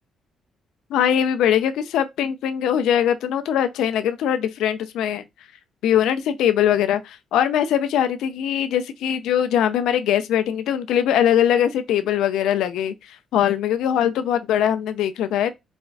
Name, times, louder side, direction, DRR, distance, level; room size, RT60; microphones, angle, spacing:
voice 1, 0.9-5.2 5.8-12.9 13.3-15.5, left 10 dB, 85° left, 0.4 m, -21 dB
4.2 x 2.3 x 2.4 m
cardioid pair, 90°, 0 cm